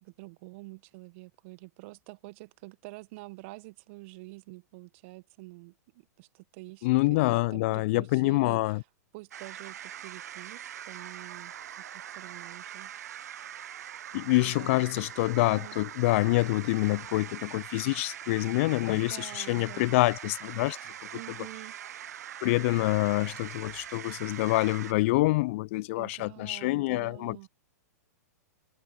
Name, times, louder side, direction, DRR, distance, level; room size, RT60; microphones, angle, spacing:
voice 1, 0.0-8.8 9.1-11.5 11.9-12.9 14.4-15.0 15.4-15.8 18.9-20.0 21.1-21.8 26.0-27.5, right 24 dB, 45° right, 1.4 m, -47 dB
voice 2, 6.8-8.8 14.1-20.8 22.4-27.5, left 21 dB, 45° left, 0.4 m, -26 dB
sound 1, 9.3-24.9, right 10 dB, 70° right, 0.6 m, -43 dB
hypercardioid pair, 110°, 9 cm